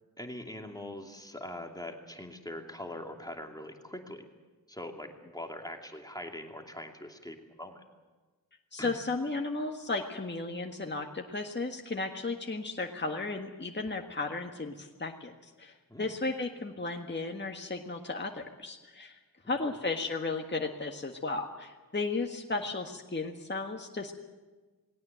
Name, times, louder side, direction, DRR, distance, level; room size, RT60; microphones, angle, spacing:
voice 1, 0.2-4.2 4.7-7.8 8.8-9.0 15.9-16.1, left 1 dB, 10° left, 3 dB, 2.7 m, -42 dB
voice 2, 8.7-19.2 19.5-24.1, left 3 dB, 30° left, 2 dB, 1.7 m, -34 dB
20.0 x 17.5 x 9.3 m, 1.3 s
cardioid pair, 50°, 35 cm